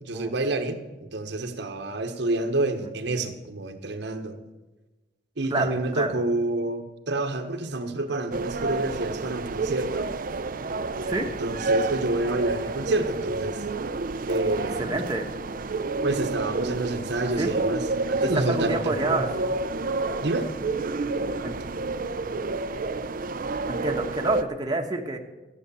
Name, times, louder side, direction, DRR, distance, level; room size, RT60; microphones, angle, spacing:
voice 1, 0.0-4.4 5.4-10.1 11.2-13.6 14.3-15.0 16.0-19.2 20.2-20.5, right 2 dB, 70° right, 5 dB, 1.2 m, -28 dB
voice 2, 5.5-6.1 11.0-11.3 14.8-15.3 17.4-17.5 18.3-19.3 21.4-21.5 23.7-25.2, right 2 dB, 25° right, 1 dB, 1.2 m, -28 dB
sound 1, 8.3-24.4, right 3 dB, 50° right, 0.6 m, -29 dB
14.5 x 9.3 x 6.9 m, 1.1 s
head